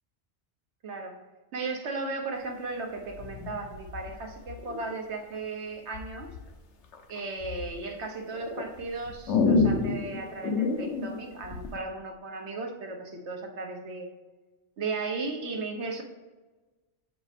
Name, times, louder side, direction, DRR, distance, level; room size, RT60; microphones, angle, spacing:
voice 1, 0.8-1.2 1.5-6.3 7.1-14.1 14.8-16.0, right 3 dB, 80° right, 3 dB, 1.3 m, -36 dB
sound 1, 3.1-4.9 5.9-6.4 6.9-7.8 8.3-11.8, left 4 dB, 85° left, 1.0 m, -29 dB
7.4 x 5.0 x 3.3 m, 1.2 s
omnidirectional pair, 1.1 m